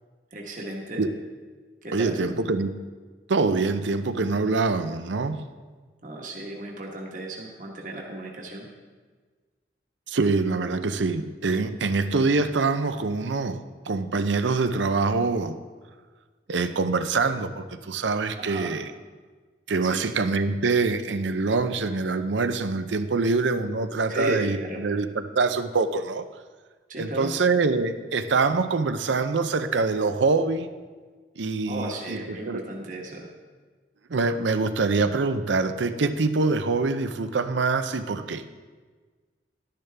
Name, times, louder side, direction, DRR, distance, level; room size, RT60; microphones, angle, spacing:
voice 1, 0.3-1.1 1.8-2.3 6.0-8.7 18.4-18.8 19.8-20.1 24.1-24.8 26.9-27.3 31.7-33.3, right 1 dB, 45° right, -1 dB, 1.3 m, -34 dB
voice 2, 1.9-2.7 3.3-5.4 10.1-13.6 13.9-15.6 16.5-18.9 19.7-24.6 24.8-25.1 25.3-26.2 27.0-30.7 31.4-32.2 32.5-32.6 34.1-38.4, right 3 dB, 85° right, 10 dB, 0.6 m, -24 dB
12.0 x 10.0 x 3.4 m, 1.4 s
head